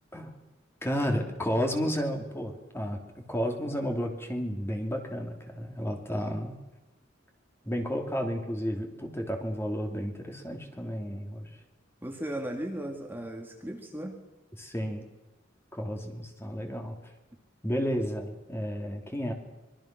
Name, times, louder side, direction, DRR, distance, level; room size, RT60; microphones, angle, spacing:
voice 1, 0.8-3.0 3.3-6.6 7.6-11.5 14.6-15.0 15.7-17.0 17.6-19.3, equal, 15° left, 3 dB, 3.0 m, -32 dB
voice 2, 12.0-14.2, right 1 dB, 10° right, 1 dB, 2.3 m, -36 dB
26.0 x 22.5 x 6.1 m, 1.1 s
head